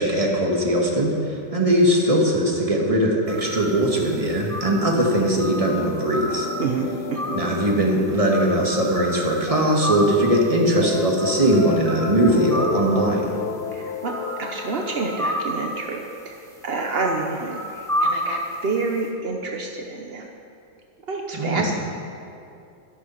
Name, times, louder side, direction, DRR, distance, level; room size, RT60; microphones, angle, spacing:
voice 1, 0.0-6.5 7.3-13.3 21.3-21.7, right 1 dB, 15° right, -1 dB, 1.7 m, -20 dB
sound 1, 3.3-19.0, equal, ahead, 1.7 m, -31 dB
sound 2, 5.5-10.4 10.8-15.3, left 9 dB, 85° left, 0.8 m, -33 dB
voice 2, 6.6-7.4 13.7-16.4 16.6-20.3 21.1-21.7, right 3 dB, 60° right, 1 dB, 0.6 m, -28 dB
13.5 x 11.5 x 5.8 m, 2.6 s
omnidirectional pair, 2.3 m